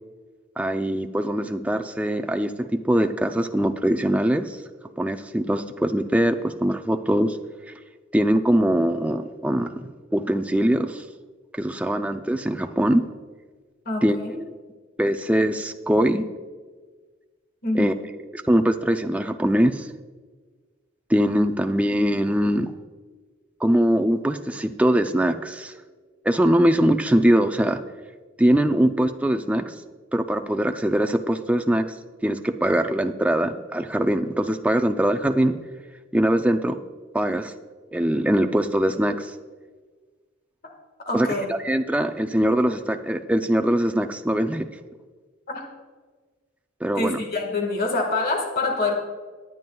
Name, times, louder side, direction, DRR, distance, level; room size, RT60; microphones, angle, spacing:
voice 1, 0.6-4.6 5.0-7.4 8.1-11.0 11.5-13.0 14.0-14.5 15.0-16.2 17.7-17.9 18.3-19.9 21.1-22.7 23.6-25.7 26.2-27.8 28.4-29.7 30.1-32.0 32.2-35.6 36.1-36.8 37.1-37.5 37.9-39.3 41.1-44.7 46.8-47.2, right 1 dB, 5° right, 7 dB, 0.4 m, -22 dB
voice 2, 13.8-14.3 17.6-18.0 40.6-40.7 41.0-41.5 45.5-45.7 47.0-49.0, left 2 dB, 50° left, 2 dB, 1.7 m, -26 dB
20.0 x 9.2 x 2.3 m, 1.4 s
head